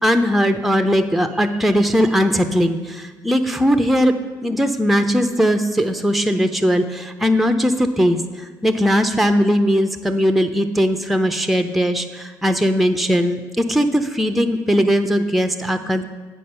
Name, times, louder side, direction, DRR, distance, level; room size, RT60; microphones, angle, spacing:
voice 1, 0.0-4.1 4.4-16.0, equal, ahead, 8 dB, 0.5 m, -19 dB
8.5 x 5.1 x 5.4 m, 1.3 s
cardioid pair, 90°, 8 cm